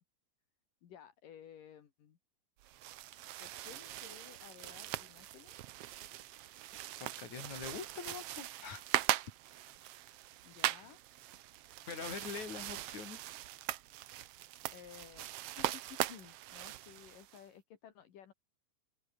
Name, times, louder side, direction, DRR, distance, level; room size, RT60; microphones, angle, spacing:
voice 1, 0.8-2.2 3.4-5.7 10.4-11.0 14.7-15.3 15.6-18.3, left 9 dB, 75° left, 3.8 m, -55 dB
sound 1, 2.6-17.4, right 14 dB, 90° right, 1.3 m, -40 dB
voice 2, 7.0-8.8 11.9-13.3, left 6 dB, 55° left, 5.0 m, -44 dB
open air
omnidirectional pair, 3.9 m